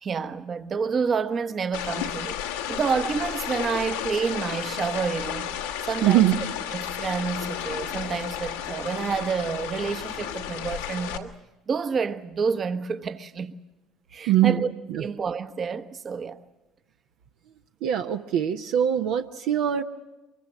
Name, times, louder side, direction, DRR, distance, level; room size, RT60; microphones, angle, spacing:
voice 1, 0.0-2.4 2.7-5.5 5.8-6.3 6.7-11.3 11.7-13.5 14.1-14.7 15.0-16.4, right 5 dB, 40° right, 1.1 m, -29 dB
sound 1, 1.7-11.2, left 10 dB, 90° left, 1.4 m, -33 dB
voice 2, 6.0-6.4 14.3-15.1 17.8-19.8, right 11 dB, 70° right, 0.8 m, -22 dB
24.0 x 22.5 x 7.2 m
hypercardioid pair, 65°, 0 cm